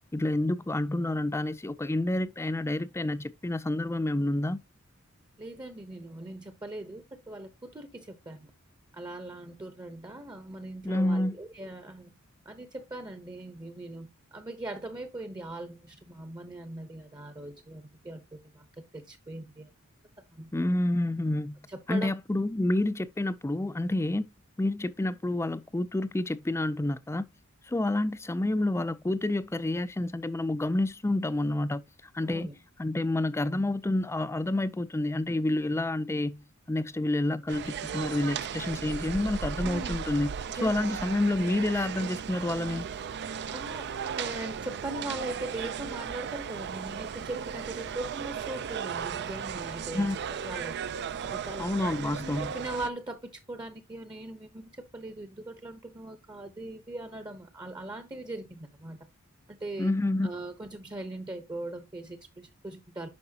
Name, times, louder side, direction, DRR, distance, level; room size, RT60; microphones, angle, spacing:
voice 1, 0.1-4.6 10.8-11.4 20.5-21.6 21.9-24.3 24.6-27.3 27.7-31.8 32.1-32.5 32.8-40.3 40.6-42.9 49.9-50.2 51.6-52.5 59.8-60.3, left 1 dB, 10° left, 0.4 m, -29 dB
voice 2, 5.4-8.5 8.9-12.1 12.4-19.7 20.2-20.5 21.7-22.1 32.2-32.5 39.5-40.0 40.5-40.9 43.5-43.9 44.2-50.8 51.3-51.7 52.0-59.0 59.5-59.9 60.2-63.1, right 2 dB, 20° right, 0.8 m, -40 dB
sound 1, 37.5-52.9, right 7 dB, 50° right, 0.4 m, -36 dB
9.6 x 5.7 x 2.8 m
head